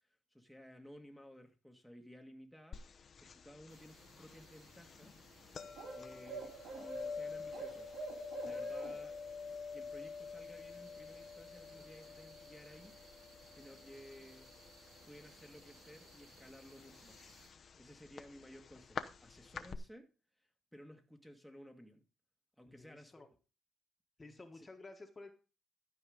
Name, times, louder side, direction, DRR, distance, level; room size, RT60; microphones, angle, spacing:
voice 1, 0.0-2.8 3.2-5.1 5.9-7.9 8.4-9.2 9.7-13.0 13.5-14.5 15.1-17.2 17.8-20.1 20.7-22.0 22.6-23.1 24.5-24.7, equal, ahead, 1.7 m, -56 dB
sound 1, 2.7-19.8, left 5 dB, 50° left, 0.8 m, -48 dB
sound 2, 3.7-17.5, right 4 dB, 85° right, 2.1 m, -53 dB
voice 2, 22.6-23.3 24.2-25.3, left 2 dB, 25° left, 1.5 m, -53 dB
12.5 x 5.0 x 5.1 m
cardioid pair, 90°, 0 cm